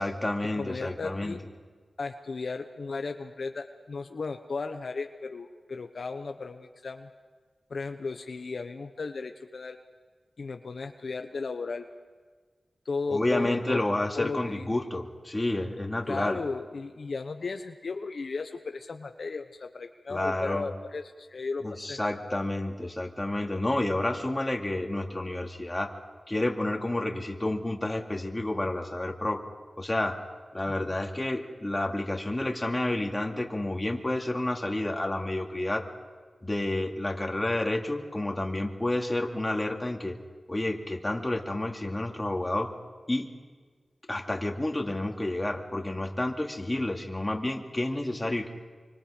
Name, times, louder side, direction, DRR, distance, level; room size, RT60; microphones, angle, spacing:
voice 1, 0.0-1.4 13.1-16.4 20.1-20.7 21.6-25.9 26.3-29.4 29.8-30.2 30.5-35.8 36.4-40.2 40.5-42.7 43.1-43.3 44.1-48.5, left 1 dB, 20° left, 2 dB, 2.6 m, -30 dB
voice 2, 0.5-1.4 2.0-7.1 7.7-9.8 10.4-11.9 12.8-13.8 14.2-14.8 16.1-22.0 30.7-31.0, left 4 dB, 70° left, 6 dB, 1.0 m, -35 dB
26.0 x 25.0 x 5.2 m, 1.5 s
wide cardioid pair, 70°, 0 cm